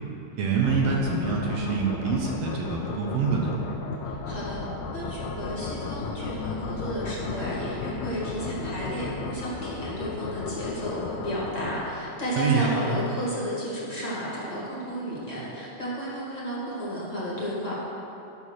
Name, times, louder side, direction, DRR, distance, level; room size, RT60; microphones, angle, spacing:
voice 1, 0.4-3.5 12.4-12.8, right 5 dB, 70° right, -1 dB, 1.9 m, -25 dB
sound 1, 0.6-12.3, left 4 dB, 75° left, 1.9 m, -34 dB
voice 2, 4.0-4.6 4.9-17.7, equal, 15° left, -8 dB, 1.9 m, -33 dB
11.0 x 4.6 x 6.5 m, 2.9 s
omnidirectional pair, 3.3 m